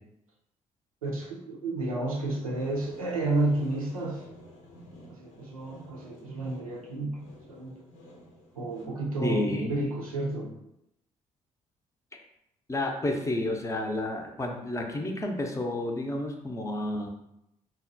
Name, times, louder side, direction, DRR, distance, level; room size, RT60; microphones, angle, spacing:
voice 1, 1.0-4.3 5.1-7.7 8.5-10.5 13.1-13.2, right 2 dB, 85° right, -2 dB, 0.5 m, -31 dB
sound 1, 2.5-8.9, left 1 dB, 75° left, 0.7 m, -51 dB
voice 2, 9.2-9.8 12.7-17.1, left 1 dB, 15° left, 2 dB, 0.6 m, -30 dB
4.0 x 2.2 x 2.5 m, 0.83 s
figure-of-eight pair, 45°, 17 cm